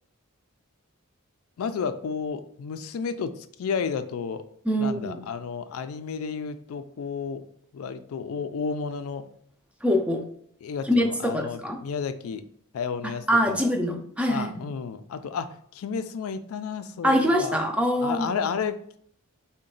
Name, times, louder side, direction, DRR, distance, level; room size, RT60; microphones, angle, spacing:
voice 1, 1.6-3.3 3.6-4.4 4.8-7.4 7.7-9.3 10.6-12.4 12.7-13.6 14.3-17.6 18.0-19.0, left 6 dB, 75° left, 11 dB, 0.3 m, -32 dB
voice 2, 4.7-5.2 9.8-10.2 10.8-11.8 13.3-14.7 17.0-18.3, equal, 5° right, 3 dB, 0.3 m, -24 dB
3.9 x 2.2 x 3.7 m, 0.65 s
head